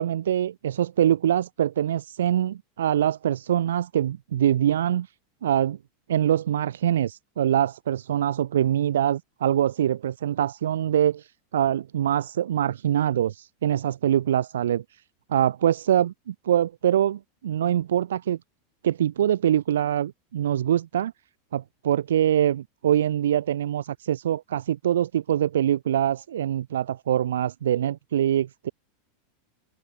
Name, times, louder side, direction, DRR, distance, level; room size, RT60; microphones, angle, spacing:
voice 1, 0.0-5.1 5.4-5.8 6.1-14.8 15.3-18.4 18.8-21.1 21.5-28.7, right 10 dB, 65° right, 0.5 m, -24 dB
open air
figure-of-eight pair, 85°, 0 cm